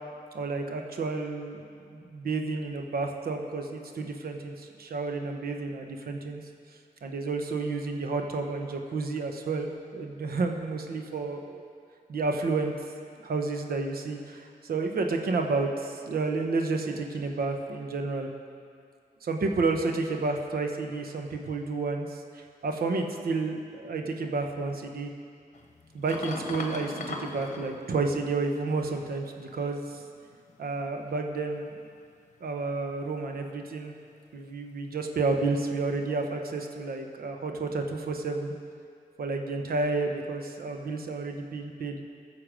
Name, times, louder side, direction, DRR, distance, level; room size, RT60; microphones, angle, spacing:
voice 1, 0.3-1.6 1.9-6.4 7.0-11.6 12.1-12.7 13.2-18.3 19.2-25.1 25.9-30.0 30.6-31.7 32.4-33.9 34.3-38.5 39.2-42.0, right 3 dB, 75° right, 4 dB, 1.0 m, -31 dB
sound 1, 25.5-28.8 29.7-30.8 31.5-32.0 36.2-36.3, left 3 dB, 50° left, 1.1 m, -40 dB
14.0 x 6.6 x 5.1 m, 2.3 s
wide cardioid pair, 95°, 16 cm